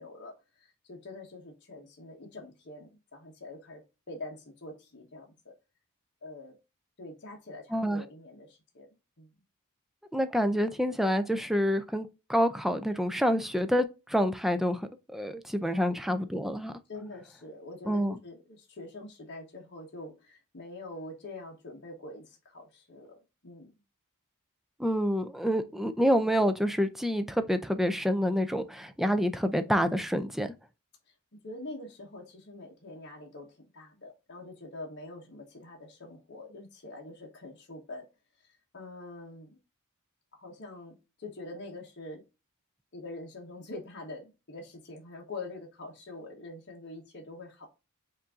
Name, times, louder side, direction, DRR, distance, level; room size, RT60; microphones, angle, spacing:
voice 1, 0.0-3.8 4.1-5.5 6.2-6.5 7.0-9.3 15.7-16.1 16.9-23.7 31.4-38.0 38.4-39.6 40.3-42.2 42.9-47.7, left 2 dB, 55° left, 1.2 m, -45 dB
voice 2, 7.7-8.0 10.1-14.8 15.1-16.7 17.9-18.2 24.8-30.5, equal, ahead, 0.4 m, -27 dB
5.5 x 2.6 x 3.6 m
head